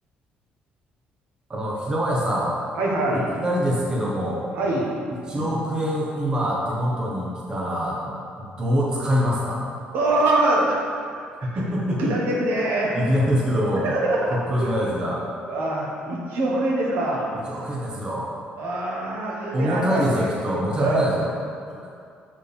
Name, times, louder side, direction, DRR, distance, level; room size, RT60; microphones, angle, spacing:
voice 1, 1.5-2.5 3.1-4.5 5.1-9.6 11.4-12.0 12.9-13.9 14.3-15.2 17.5-18.4 19.5-21.3 21.7-21.8, equal, 25° right, -4 dB, 0.9 m, -25 dB
voice 2, 2.8-3.3 4.5-4.9 5.3-5.4 9.9-10.8 11.1-11.6 12.0-12.9 13.8-14.8 15.5-17.3 18.6-20.3 20.8-21.0, right 2 dB, 75° right, -2 dB, 1.2 m, -24 dB
7.2 x 4.7 x 3.3 m, 2.3 s
cardioid pair, 160°, 3 cm